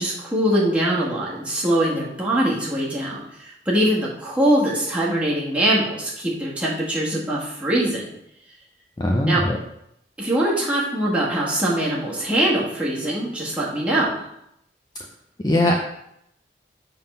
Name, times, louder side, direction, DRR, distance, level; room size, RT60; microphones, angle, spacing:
voice 1, 0.0-8.1 9.2-9.4 10.2-14.2, right 1 dB, 5° right, -6 dB, 1.6 m, -22 dB
voice 2, 9.0-9.6 15.4-15.8, left 1 dB, 20° left, -1 dB, 0.5 m, -20 dB
7.1 x 3.8 x 5.5 m, 0.78 s
head